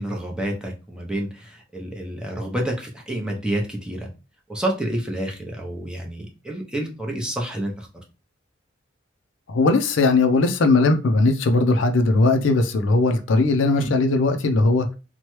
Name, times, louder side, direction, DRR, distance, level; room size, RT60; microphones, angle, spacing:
voice 1, 0.0-4.1 4.5-7.9 13.8-13.9, right 1 dB, 5° right, 0.6 m, -29 dB
voice 2, 9.5-14.9, left 3 dB, 85° left, 0.5 m, -19 dB
2.9 x 2.2 x 3.0 m
head